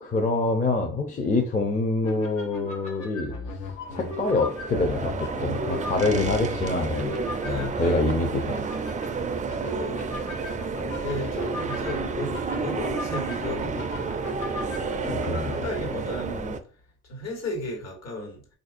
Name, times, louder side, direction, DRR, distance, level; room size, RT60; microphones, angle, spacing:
voice 1, 0.0-3.3 3.9-7.2 7.4-8.6 15.0-15.5, left 3 dB, 25° left, 0.6 m, -26 dB
sound 1, 2.0-15.6, left 3 dB, 75° left, 0.9 m, -37 dB
sound 2, 3.8-16.6, right 4 dB, 25° right, 0.3 m, -31 dB
voice 2, 7.4-8.0 8.3-8.5 9.0-9.1 9.5-10.4 10.9-12.4 12.6-14.3 15.5-16.6 17.1-18.4, left 1 dB, 60° left, 1.5 m, -35 dB
4.2 x 2.6 x 2.5 m
cardioid pair, 90°, 30 cm